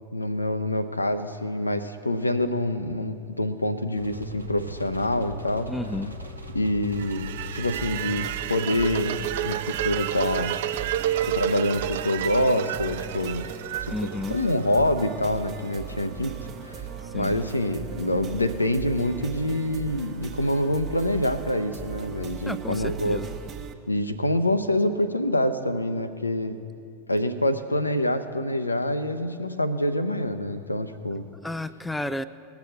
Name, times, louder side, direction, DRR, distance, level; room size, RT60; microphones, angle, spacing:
voice 1, 0.1-5.7 6.5-10.6 11.2-13.4 13.8-13.9 14.3-16.4 16.6-16.9 17.1-23.2 23.9-26.6 27.1-31.3, left 1 dB, 85° left, 10 dB, 0.7 m, -26 dB
sound 1, 3.9-23.3, right 2 dB, 85° right, 1.3 m, -42 dB
voice 2, 5.7-6.1 13.9-14.4 17.1-17.4 22.5-23.3 31.4-32.2, left 1 dB, 5° left, 14 dB, 0.3 m, -31 dB
sound 2, 6.9-15.0, right 11 dB, 55° right, 0.5 m, -31 dB
sound 3, 7.7-23.7, right 8 dB, 30° right, 1.0 m, -40 dB
19.0 x 7.0 x 6.9 m, 2.5 s
figure-of-eight pair, 90°, 0 cm